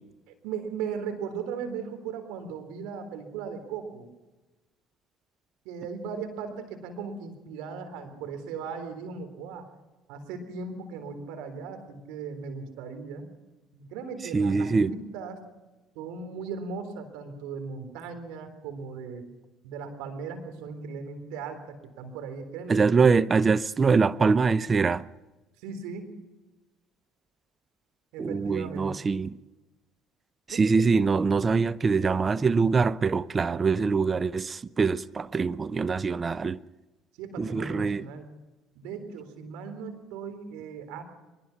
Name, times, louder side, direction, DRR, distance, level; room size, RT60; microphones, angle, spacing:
voice 1, 0.3-4.1 5.7-9.7 10.1-13.3 13.7-15.4 16.0-19.3 19.6-23.0 25.6-26.1 28.1-29.1 30.5-30.6 37.2-38.3 38.8-41.0, right 5 dB, 70° right, 3.8 m, -37 dB
voice 2, 14.3-14.9 22.7-25.1 28.2-29.4 30.5-36.6 37.4-38.1, right 4 dB, 30° right, 0.7 m, -24 dB
23.0 x 20.5 x 6.0 m
hypercardioid pair, 65°, 0 cm